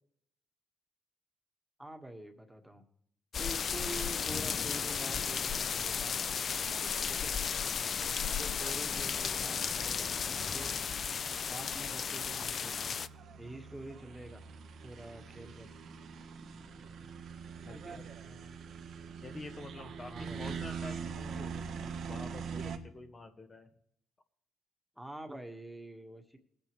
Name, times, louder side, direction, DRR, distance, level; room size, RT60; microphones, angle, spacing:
voice 1, 1.8-2.8 3.4-6.2 7.1-7.4 8.4-10.8 11.4-12.9 13.4-14.4 14.8-15.7 17.7-18.0 20.0-20.5 25.0-26.4, right 1 dB, 5° right, 5 dB, 1.7 m, -46 dB
sound 1, 3.3-13.1, left 7 dB, 50° left, 0.4 m, -34 dB
sound 2, 6.6-22.8, right 6 dB, 70° right, 1.4 m, -45 dB
voice 2, 7.6-7.9 17.6-18.5 19.2-23.7, left 2 dB, 30° left, 5 dB, 1.3 m, -48 dB
20.0 x 9.3 x 3.3 m, 0.70 s
cardioid pair, 90°, 0 cm